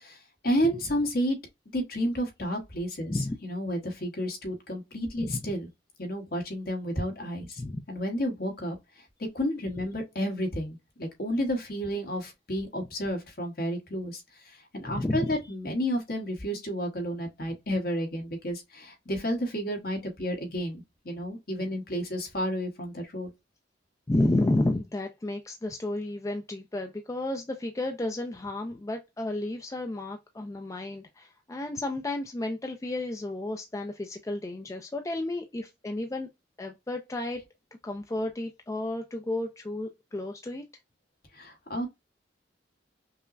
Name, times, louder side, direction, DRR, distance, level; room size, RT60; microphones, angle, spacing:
voice 1, 0.0-1.4 1.7-3.2 3.4-5.7 6.0-7.6 7.9-9.0 9.3-23.3 41.3-41.9, equal, 55° left, 1.2 m, -31 dB
voice 2, 5.2-5.5 7.6-7.8 14.8-15.4 24.1-36.3 36.6-37.4 37.8-40.6, left 2 dB, 15° left, 0.3 m, -31 dB
5.4 x 2.0 x 2.5 m
head